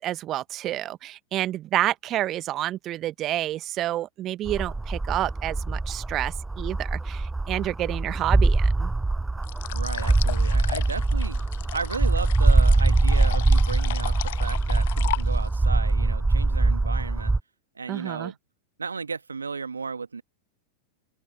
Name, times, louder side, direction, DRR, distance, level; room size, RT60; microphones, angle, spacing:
voice 1, 0.0-8.9 17.9-18.3, right 13 dB, 35° right, 1.0 m, -29 dB
sound 1, 4.5-17.4, right 2 dB, 10° right, 0.3 m, -23 dB
sound 2, 9.4-15.6, left 16 dB, 55° left, 0.7 m, -36 dB
voice 2, 9.7-11.4 11.7-17.3 17.8-18.4 18.8-20.2, right 5 dB, 80° right, 1.8 m, -34 dB
open air
figure-of-eight pair, 90°, 0 cm